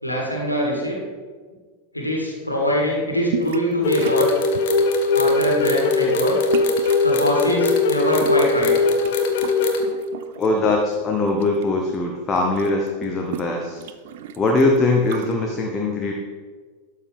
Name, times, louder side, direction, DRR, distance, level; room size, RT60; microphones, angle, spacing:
voice 1, 0.0-1.0 1.9-4.3 5.1-6.4 7.0-8.7, equal, 85° left, -1 dB, 1.9 m, -22 dB
sound 1, 3.3-3.7 4.0-4.8 5.4-5.6 6.5-7.1 8.0-9.1 9.4-10.5 10.9-11.7 11.9-12.0 12.3-15.3, right 9 dB, 55° right, 0.5 m, -34 dB
sound 2, 3.8-9.8, left 3 dB, 50° left, 1.1 m, -20 dB
voice 2, 10.4-13.8 14.4-16.1, left 2 dB, 20° left, 0 dB, 1.0 m, -21 dB
12.0 x 6.6 x 3.5 m, 1.5 s
figure-of-eight pair, 90°, 0 cm